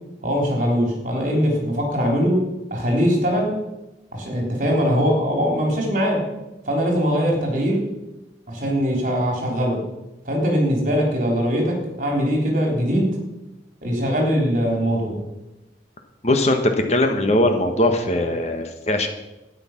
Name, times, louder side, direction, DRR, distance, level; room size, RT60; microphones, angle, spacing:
voice 1, 0.2-2.4 2.7-3.6 4.1-6.2 6.7-7.8 8.5-9.8 10.3-13.2 13.8-15.2, equal, 45° right, 0 dB, 3.6 m, -21 dB
voice 2, 16.2-16.6 16.9-19.1, left 1 dB, 35° left, 5 dB, 1.3 m, -20 dB
12.0 x 10.0 x 5.9 m, 0.98 s
head